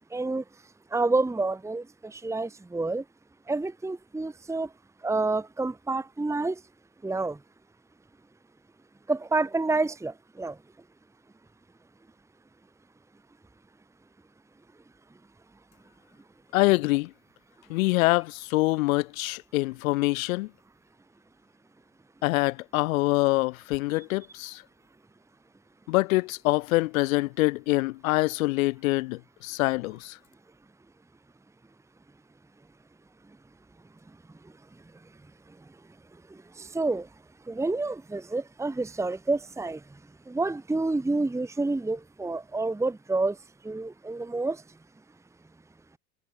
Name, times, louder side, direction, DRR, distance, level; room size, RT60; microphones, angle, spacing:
voice 1, 0.1-0.4 0.9-3.0 3.5-4.7 5.0-6.6 7.0-7.4 9.1-10.5 36.6-37.1 37.5-39.8 40.3-43.4 43.6-44.6, right 3 dB, 5° right, 1.7 m, -28 dB
voice 2, 16.5-17.1 17.7-20.5 22.2-24.6 25.9-30.2, left 21 dB, 55° left, 0.9 m, -25 dB
figure-of-eight pair, 80°, 50 cm